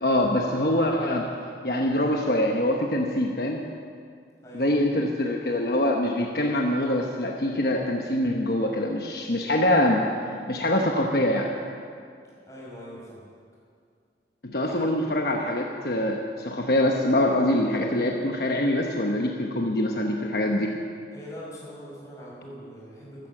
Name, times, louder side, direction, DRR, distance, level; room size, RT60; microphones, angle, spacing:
voice 1, 0.0-1.3 1.6-3.6 4.5-11.5 14.4-20.7, left 1 dB, 60° left, 1 dB, 1.1 m, -24 dB
voice 2, 4.4-4.7 12.5-13.2 14.5-14.9 21.1-23.3, equal, 20° left, -5 dB, 5.3 m, -42 dB
14.0 x 14.0 x 7.3 m, 2.3 s
head